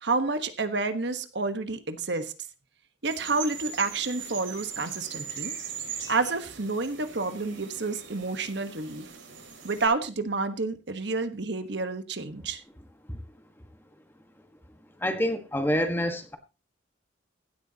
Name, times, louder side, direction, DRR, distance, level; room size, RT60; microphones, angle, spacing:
voice 1, 0.0-2.3 3.0-5.5 6.1-9.1 9.6-12.6, right 3 dB, 60° right, 1.3 m, -29 dB
sound 1, 3.0-9.9, right 7 dB, 90° right, 5.8 m, -40 dB
voice 2, 15.0-16.4, equal, 10° left, 1.4 m, -27 dB
16.5 x 12.5 x 2.9 m
head